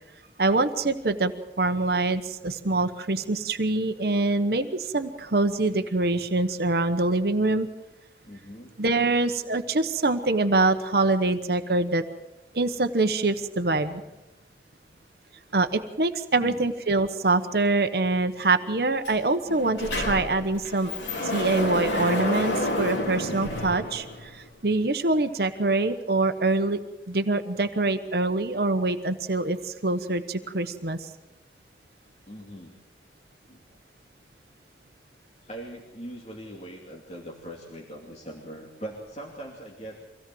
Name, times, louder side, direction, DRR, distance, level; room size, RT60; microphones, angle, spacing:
voice 1, 0.4-1.3 1.6-7.7 8.8-12.0 12.5-14.0 15.5-20.9 21.2-26.8 27.1-31.1, right 2 dB, 60° right, 8 dB, 1.0 m, -25 dB
voice 2, 8.2-8.7 16.4-16.7 32.3-32.8 33.5-33.6 35.4-40.0, right 1 dB, 35° left, -1 dB, 2.6 m, -41 dB
Sliding door, 19.0-19.2 19.5-24.5, left 1 dB, 85° left, 4.0 m, -30 dB
24.5 x 17.0 x 7.8 m, 0.99 s
head